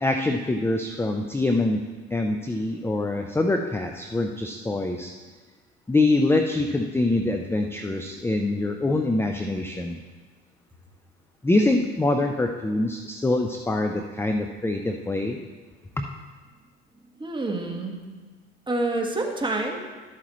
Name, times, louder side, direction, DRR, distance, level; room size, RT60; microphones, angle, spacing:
voice 1, 0.0-1.8 2.1-5.1 5.9-10.0 11.4-15.4 16.0-16.1, left 2 dB, 10° left, 4 dB, 0.6 m, -24 dB
voice 2, 17.0-18.0 18.7-19.8, right 2 dB, 15° right, 1 dB, 1.6 m, -28 dB
12.0 x 8.3 x 3.1 m, 1.4 s
supercardioid pair, 80°, 29 cm